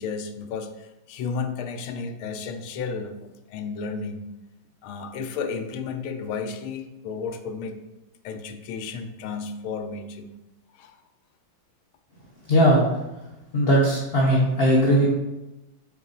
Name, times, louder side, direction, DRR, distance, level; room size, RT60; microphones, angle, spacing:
voice 1, 0.0-4.3 4.8-7.8 8.2-10.3 10.8-11.0, left 5 dB, 85° left, 7 dB, 1.5 m, -33 dB
voice 2, 12.5-12.9 13.5-15.0, equal, 50° left, -3 dB, 0.7 m, -18 dB
7.2 x 4.0 x 3.9 m, 1.0 s
omnidirectional pair, 2.2 m